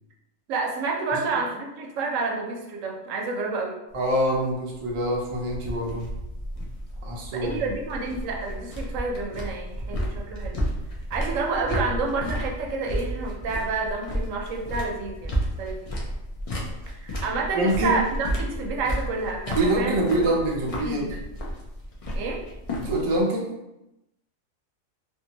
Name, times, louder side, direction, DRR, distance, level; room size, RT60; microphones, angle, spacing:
voice 1, 0.5-3.8 7.3-10.6 11.1-15.9 17.0-20.0 20.3-20.4 20.8-21.2 22.1-22.4, right 3 dB, 75° right, 0 dB, 0.9 m, -29 dB
sound 1, 3.9-23.2, equal, 65° left, 0.3 m, -32 dB
voice 2, 3.9-6.1 7.0-7.6 17.5-18.0 19.5-21.2 22.8-23.5, right 1 dB, 55° right, -2 dB, 0.3 m, -25 dB
2.6 x 2.5 x 2.8 m, 0.93 s
omnidirectional pair, 1.4 m